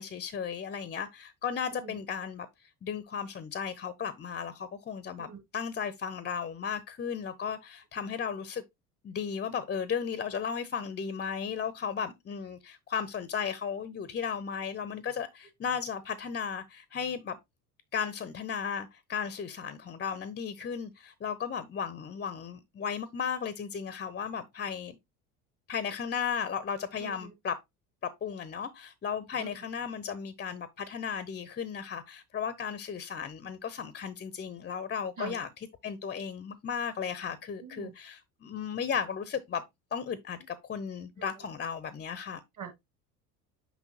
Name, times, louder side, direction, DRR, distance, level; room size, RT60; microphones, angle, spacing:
voice 1, 0.0-2.5 2.8-8.6 9.0-17.4 17.9-25.0 25.7-27.6 28.0-35.5 35.8-39.6 39.9-42.4, left 7 dB, 25° left, 0.7 m, -35 dB
voice 2, 27.0-27.3 29.4-29.5 35.2-35.4 37.6-37.9 41.2-41.3 42.6-42.8, right 7 dB, 40° right, 2.5 m, -43 dB
6.1 x 5.5 x 2.8 m
figure-of-eight pair, 60°, 45 cm